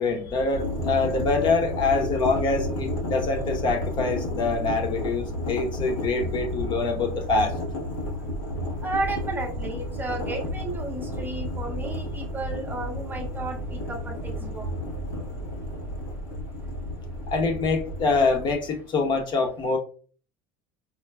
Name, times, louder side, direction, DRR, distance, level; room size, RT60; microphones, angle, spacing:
voice 1, 0.0-7.5 17.3-19.8, left 3 dB, 40° left, 4 dB, 0.8 m, -25 dB
sound 1, 0.5-18.5, left 1 dB, 90° left, 1.2 m, -32 dB
voice 2, 8.8-14.7, right 2 dB, 15° right, 2 dB, 0.6 m, -33 dB
4.4 x 2.1 x 2.2 m, 0.41 s
supercardioid pair, 105°, 12 cm